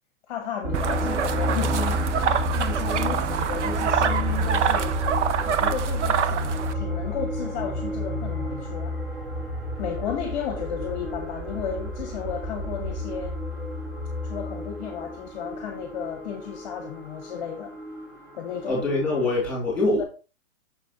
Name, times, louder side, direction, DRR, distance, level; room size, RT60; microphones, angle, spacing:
voice 1, 0.3-2.1 2.5-5.0 5.4-9.0 9.8-13.4 14.2-17.8 18.3-18.8 19.9-20.0, left 8 dB, 35° left, 1.0 m, -34 dB
sound 1, 0.6-19.5, equal, 30° right, 1.7 m, -30 dB
sound 2, 0.7-6.7, right 8 dB, 60° right, 0.7 m, -26 dB
voice 2, 18.7-20.1, left 2 dB, 5° left, 3.2 m, -24 dB
7.0 x 6.0 x 3.0 m
hypercardioid pair, 170°, 40 cm